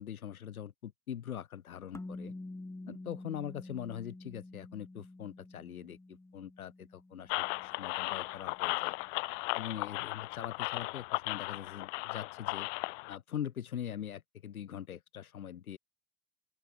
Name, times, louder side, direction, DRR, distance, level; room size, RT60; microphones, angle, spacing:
voice 1, 0.0-2.3 2.9-8.9 9.5-12.7 13.1-15.8, left 9 dB, 85° left, 1.3 m, -42 dB
sound 1, 1.9-8.4, left 2 dB, 5° left, 1.4 m, -48 dB
sound 2, 7.3-13.2, left 28 dB, 55° left, 0.6 m, -36 dB
open air
hypercardioid pair, 80°, 42 cm